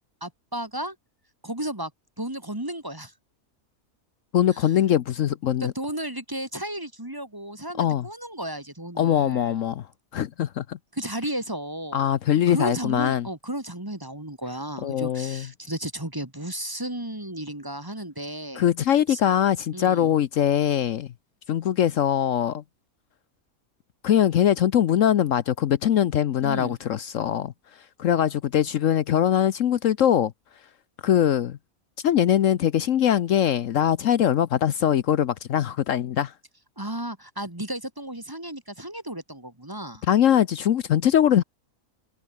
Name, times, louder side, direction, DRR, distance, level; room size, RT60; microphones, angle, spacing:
voice 1, 0.2-1.0 1.4-1.9 2.2-3.1 4.5-4.7 5.6-9.5 10.9-12.1 12.5-18.7 19.1-19.2 19.7-20.1 26.4-26.8 36.8-40.0, right 1 dB, 15° right, 2.1 m, -33 dB
voice 2, 4.3-5.7 7.8-8.1 9.0-9.8 10.1-10.8 11.9-13.3 14.8-15.5 18.6-21.1 21.5-22.6 24.0-27.5 28.0-30.3 31.0-31.6 32.0-36.3 40.1-41.4, left 10 dB, 65° left, 1.1 m, -22 dB
omnidirectional pair, 1.5 m